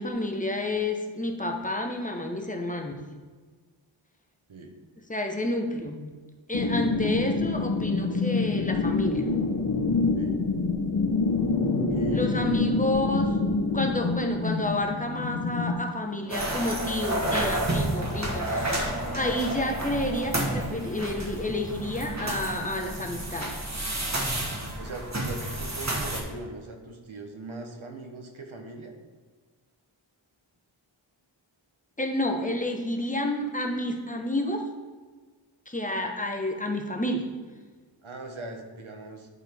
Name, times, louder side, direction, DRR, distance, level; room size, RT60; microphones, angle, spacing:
voice 1, 0.0-3.0 5.1-6.2 6.5-9.3 12.1-13.4 13.7-23.6 32.0-34.7 35.7-37.3, left 1 dB, 15° left, 2 dB, 1.0 m, -30 dB
sound 1, 6.5-15.7, left 3 dB, 50° left, 1.0 m, -26 dB
voice 2, 11.9-12.7 24.8-28.9 38.0-39.3, right 2 dB, 70° right, 3 dB, 1.1 m, -40 dB
sound 2, 16.3-26.2, right 1 dB, 35° right, 1.5 m, -30 dB
11.0 x 4.0 x 3.5 m, 1.4 s
wide cardioid pair, 45°, 50 cm